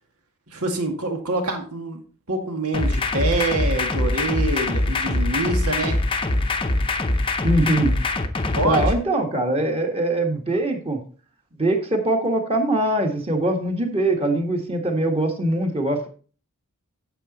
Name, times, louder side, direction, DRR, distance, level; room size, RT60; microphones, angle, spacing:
voice 1, 0.5-2.0 2.3-6.0 8.6-8.9, right 2 dB, 80° right, 4 dB, 2.1 m, -25 dB
sound 1, 2.7-8.9, left 2 dB, 25° left, 0.7 m, -23 dB
voice 2, 7.4-7.9 8.6-11.0 11.6-16.1, right 1 dB, 25° right, 3 dB, 1.7 m, -22 dB
8.9 x 7.1 x 4.2 m, 0.39 s
head